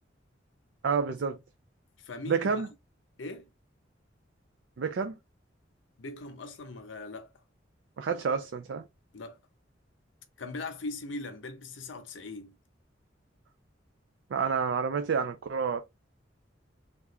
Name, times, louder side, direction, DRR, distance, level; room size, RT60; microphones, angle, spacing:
voice 1, 0.8-1.4 2.3-2.7 4.8-5.2 8.0-8.8 14.3-15.8, right 6 dB, 65° right, 0.4 m, -29 dB
voice 2, 2.0-2.5 3.2-3.5 6.0-7.3 9.1-9.4 10.4-12.5, left 3 dB, 80° left, 0.7 m, -40 dB
3.6 x 2.3 x 3.0 m
head